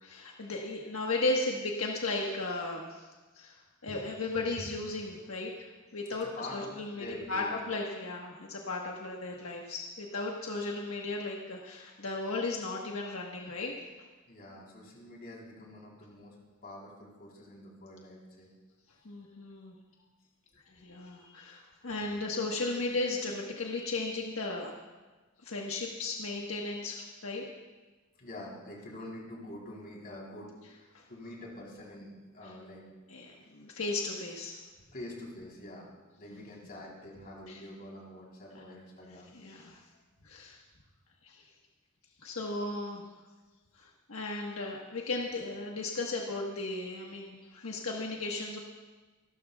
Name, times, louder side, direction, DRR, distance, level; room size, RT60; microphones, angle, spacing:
voice 1, 0.0-3.1 3.3-3.6 3.8-5.5 5.9-13.7 19.0-19.7 20.7-24.7 25.4-27.4 30.9-31.0 33.1-34.6 36.3-36.4 37.5-37.6 39.3-39.8 40.2-40.6 41.2-41.4 42.2-43.1 43.8-48.6, left 2 dB, 90° left, -1 dB, 1.4 m, -35 dB
voice 2, 6.2-7.5 14.3-16.4 16.6-18.5 28.2-30.5 31.1-32.9 34.9-35.9 36.2-39.3, left 1 dB, 45° left, -3 dB, 3.8 m, -46 dB
27.0 x 12.5 x 2.4 m, 1.2 s
head